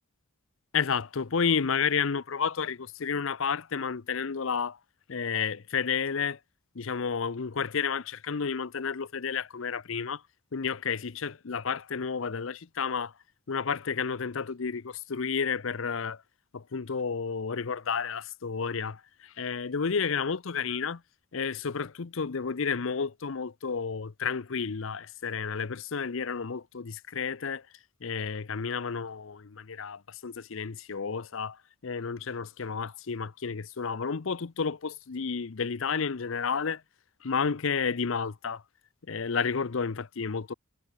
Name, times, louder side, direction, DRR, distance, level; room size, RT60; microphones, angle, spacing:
voice 1, 0.7-4.8 5.1-6.4 6.7-10.2 10.5-13.1 13.5-16.2 16.5-21.0 21.3-27.6 28.0-36.8 37.2-38.6 39.1-40.5, left 6 dB, 60° left, 0.6 m, -31 dB
head